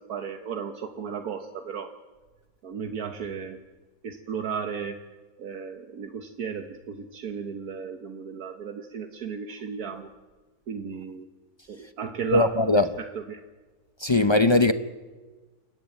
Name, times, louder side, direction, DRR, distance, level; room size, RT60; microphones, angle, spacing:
voice 1, 0.1-1.9 2.6-3.6 4.0-5.0 5.4-10.1 10.7-11.3 11.7-13.4, right 6 dB, 75° right, 1.6 m, -35 dB
voice 2, 12.3-12.9 14.0-14.7, left 2 dB, 35° left, 0.4 m, -19 dB
29.5 x 10.5 x 8.9 m
omnidirectional pair, 1.6 m